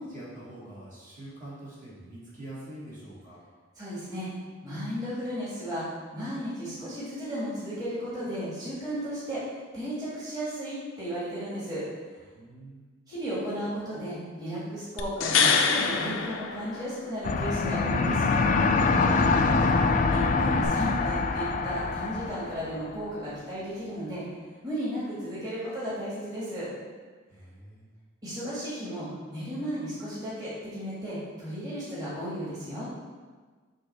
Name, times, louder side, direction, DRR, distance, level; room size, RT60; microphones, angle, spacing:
voice 1, 0.0-3.4 12.3-12.9 27.3-27.9, right 1 dB, 40° right, -8 dB, 2.0 m, -44 dB
voice 2, 3.8-4.3 4.6-11.8 13.1-18.5 20.1-24.2 24.6-26.7 28.2-32.9, equal, 20° right, -10 dB, 1.8 m, -34 dB
sound 1, 15.0-17.3 20.6-20.7, left 5 dB, 90° left, 0.6 m, -25 dB
sound 2, 17.2-22.8, left 4 dB, 40° left, 0.4 m, -24 dB
6.4 x 3.1 x 5.7 m, 1.4 s
head